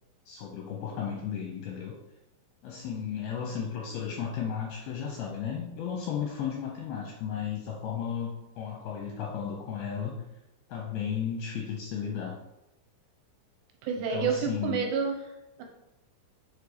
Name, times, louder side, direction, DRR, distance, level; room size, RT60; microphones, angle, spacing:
voice 1, 0.3-2.0 2.6-10.2 10.7-12.4 14.0-14.9, left 7 dB, 80° left, -1 dB, 2.4 m, -34 dB
voice 2, 13.8-15.2 15.6-15.7, right 6 dB, 75° right, 3 dB, 2.8 m, -29 dB
6.6 x 4.9 x 5.4 m, 0.95 s
omnidirectional pair, 5.5 m